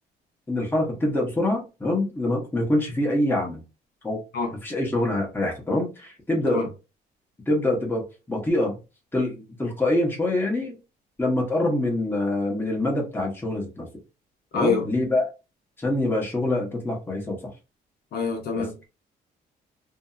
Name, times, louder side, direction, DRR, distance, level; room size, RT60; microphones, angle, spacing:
voice 1, 0.5-3.6 4.0-4.2 4.6-6.6 7.5-8.8 9.1-10.8 11.2-13.9 14.5-15.3 15.8-17.5 18.5-18.6, left 1 dB, 10° left, 1.0 m, -25 dB
voice 2, 14.5-14.9 18.1-18.8, left 4 dB, 65° left, 1.0 m, -26 dB
2.7 x 2.6 x 2.3 m
cardioid pair, 110°, 17 cm